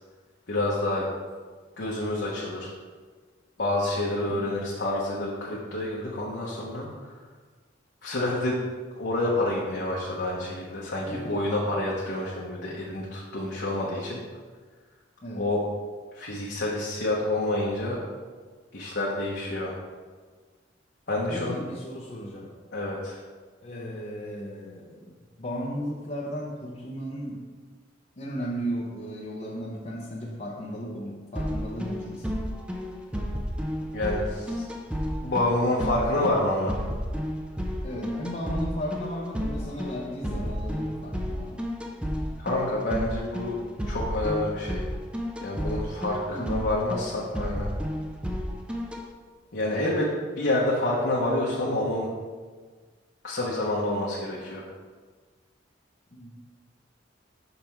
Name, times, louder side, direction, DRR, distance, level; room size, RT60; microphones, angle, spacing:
voice 1, 0.5-1.0 1.8-2.7 3.6-7.1 8.0-8.6 9.0-14.2 15.4-15.6 16.1-18.0 18.7-19.7 21.1-21.6 22.7-23.2 33.9-34.6 35.2-36.9 42.4-43.6 43.9-44.8 45.4-47.7 49.5-50.1 50.4-52.1 53.2-54.6, left 1 dB, 65° left, -5 dB, 1.0 m, -28 dB
voice 2, 11.1-11.7 15.2-15.5 21.3-22.5 23.6-27.5 28.2-32.4 37.8-41.7 46.3-46.6 56.1-56.4, equal, 35° left, -4 dB, 0.8 m, -35 dB
sound 1, 31.4-49.0, equal, 5° right, 0.6 m, -32 dB
5.8 x 5.6 x 4.5 m, 1.5 s
head